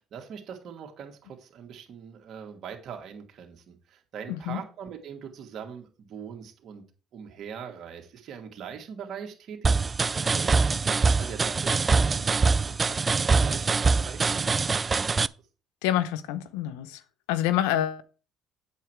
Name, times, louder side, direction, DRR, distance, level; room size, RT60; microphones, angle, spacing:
voice 1, 0.0-6.8 7.1-15.3, right 7 dB, 60° right, 2.3 m, -42 dB
voice 2, 4.3-4.6 15.8-17.0 17.3-18.0, left 12 dB, 85° left, 0.8 m, -27 dB
sound 1, 9.6-15.3, right 4 dB, 30° right, 0.4 m, -24 dB
8.2 x 6.9 x 4.7 m
supercardioid pair, 65°, 0 cm